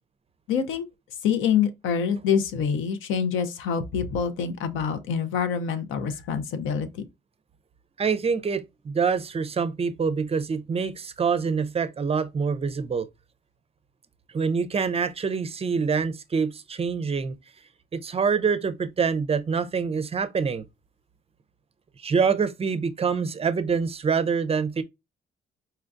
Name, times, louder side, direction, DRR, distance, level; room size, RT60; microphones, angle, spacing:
voice 1, 0.5-0.8 1.2-6.9, left 7 dB, 85° left, 0.6 m, -26 dB
voice 2, 8.0-13.1 14.3-17.3 17.9-20.6 22.0-24.8, right 5 dB, 30° right, 0.5 m, -25 dB
4.3 x 2.3 x 2.5 m
cardioid pair, 90°, 20 cm